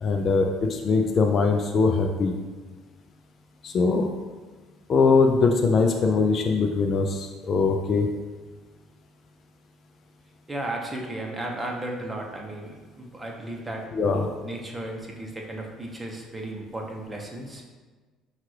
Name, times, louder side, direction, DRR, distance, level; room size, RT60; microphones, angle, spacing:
voice 1, 0.0-2.3 3.6-4.1 4.9-8.1 13.9-14.2, left 4 dB, 50° left, 4 dB, 0.4 m, -22 dB
voice 2, 10.5-13.8 14.1-17.6, right 1 dB, 15° right, 0 dB, 0.9 m, -34 dB
5.6 x 2.4 x 3.2 m, 1.3 s
hypercardioid pair, 65°, 0 cm